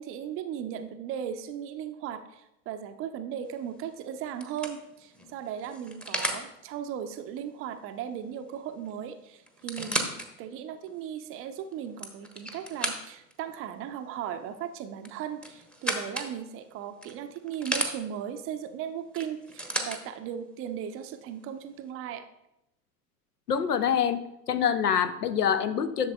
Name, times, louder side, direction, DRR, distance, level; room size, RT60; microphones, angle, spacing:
voice 1, 0.0-10.1 10.4-22.3, right 9 dB, 30° right, 9 dB, 0.5 m, -37 dB
sound 1, 3.5-3.8 4.4-6.5 8.5-8.6 8.9-9.0 9.5-10.3 10.9-11.0 11.7-13.3 15.0-16.3 17.0-17.9 19.2-20.0 20.9-21.0, right 1 dB, ahead, 0.8 m, -33 dB
voice 2, 23.5-24.2 24.5-26.1, left 8 dB, 85° left, 12 dB, 0.6 m, -25 dB
11.0 x 6.6 x 2.3 m, 0.87 s
figure-of-eight pair, 80°, 45 cm